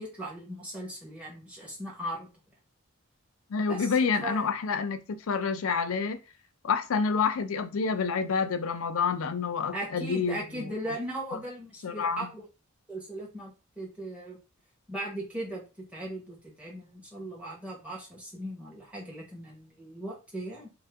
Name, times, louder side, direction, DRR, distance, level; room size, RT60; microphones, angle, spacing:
voice 1, 0.0-2.3 3.7-4.5 9.7-12.4 12.9-14.4 14.9-20.7, right 1 dB, 5° right, 1.1 m, -38 dB
voice 2, 3.5-6.2 6.6-10.7 11.3-11.4 11.8-12.3, left 5 dB, 70° left, 0.4 m, -28 dB
3.5 x 2.1 x 3.4 m
head